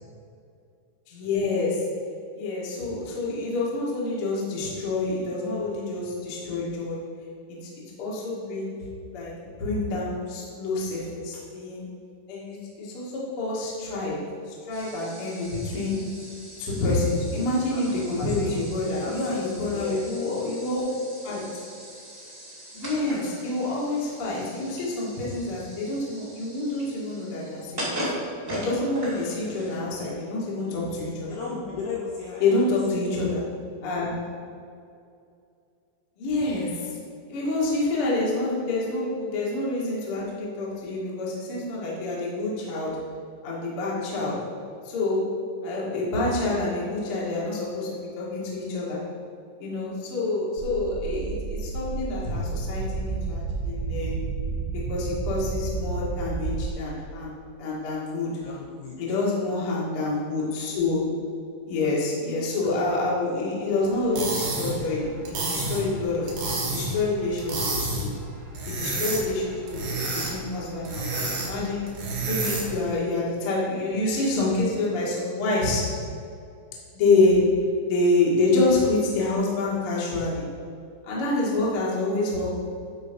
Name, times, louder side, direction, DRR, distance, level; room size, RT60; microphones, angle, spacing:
voice 1, 1.1-1.8 2.3-7.0 7.5-7.7 8.0-8.7 9.1-11.8 12.3-14.2 14.5-16.0 16.6-20.8 21.2-21.4 22.7-28.1 28.5-31.3 32.4-33.4 33.8-34.1 36.2-37.0 37.3-42.9 43.4-44.4 44.8-45.2 45.6-49.0 49.6-54.2 54.7-58.3 59.0-61.0 61.6-68.1 68.7-71.8 72.2-75.8 76.9-77.4 77.9-80.5 81.0-82.5, left 2 dB, 60° left, -6 dB, 1.5 m, -27 dB
sound 1, 14.7-30.1, equal, 45° right, 1.0 m, -39 dB
voice 2, 17.6-18.6 19.0-20.1 31.3-33.1 58.4-59.0, left 4 dB, 80° left, -3 dB, 2.5 m, -36 dB
sound 2, 50.6-56.7, right 4 dB, 80° right, 2.8 m, -31 dB
sound 3, 64.0-72.8, right 2 dB, 65° right, 2.0 m, -30 dB
12.0 x 4.1 x 5.3 m, 2.4 s
omnidirectional pair, 5.7 m